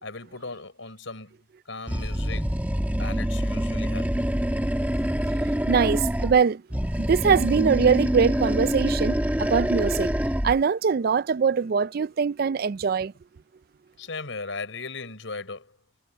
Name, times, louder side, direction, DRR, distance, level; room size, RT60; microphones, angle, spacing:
voice 1, 0.0-1.4 1.7-2.5 3.0-4.1 14.0-15.8, left 3 dB, 75° left, 4.7 m, -37 dB
Animal, 1.9-6.4 6.7-10.6, equal, 10° right, 1.5 m, -26 dB
voice 2, 5.7-6.6 7.0-10.1 10.4-13.1, right 6 dB, 50° right, 0.4 m, -22 dB
head